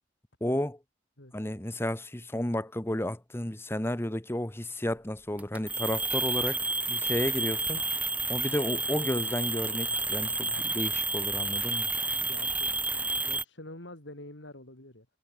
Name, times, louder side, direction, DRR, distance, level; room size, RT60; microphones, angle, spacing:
voice 1, 0.4-0.8 1.3-6.6 6.9-7.8 8.3-11.9, left 1 dB, 15° left, 1.2 m, -32 dB
sound 1, 5.4-13.4, right 3 dB, 10° right, 0.7 m, -30 dB
voice 2, 6.6-7.0 12.1-12.7 13.0-15.1, left 1 dB, 75° left, 5.3 m, -47 dB
head